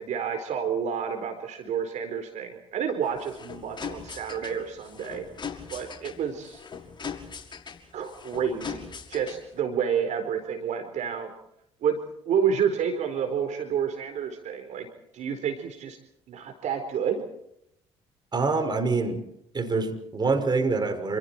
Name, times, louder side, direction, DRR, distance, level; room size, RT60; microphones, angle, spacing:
voice 1, 0.0-5.2 5.7-6.6 7.9-11.3 11.8-12.0 12.3-14.9 15.1-16.0 16.3-17.2, right 7 dB, 55° right, 6 dB, 4.2 m, -29 dB
sound 1, 3.0-9.6, left 6 dB, 35° left, 5.9 m, -40 dB
voice 2, 18.3-19.2 19.5-21.2, right 4 dB, 30° right, 6 dB, 5.8 m, -25 dB
28.5 x 27.5 x 4.5 m, 0.77 s
hypercardioid pair, 55°, 14 cm